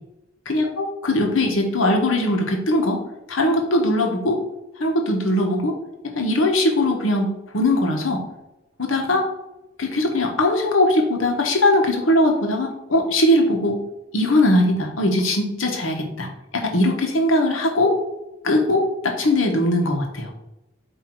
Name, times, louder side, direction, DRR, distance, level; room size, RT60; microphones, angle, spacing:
voice 1, 0.5-3.0 3.3-4.4 4.8-5.8 6.0-8.2 8.8-9.3 9.8-13.8 14.1-16.3 16.5-18.0 18.4-20.3, left 1 dB, 85° left, 2 dB, 1.3 m, -20 dB
8.0 x 2.8 x 4.7 m, 0.94 s
head